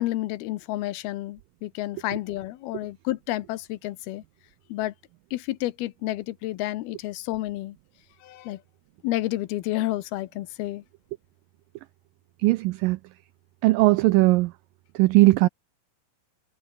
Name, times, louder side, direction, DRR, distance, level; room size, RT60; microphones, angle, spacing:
voice 1, 0.0-4.2 4.7-4.9 5.3-7.8 8.2-8.6 9.0-10.8, left 16 dB, 80° left, 2.7 m, -30 dB
voice 2, 12.4-13.0 13.6-14.5 15.0-15.5, right 20 dB, 90° right, 1.9 m, -18 dB
omnidirectional pair, 4.6 m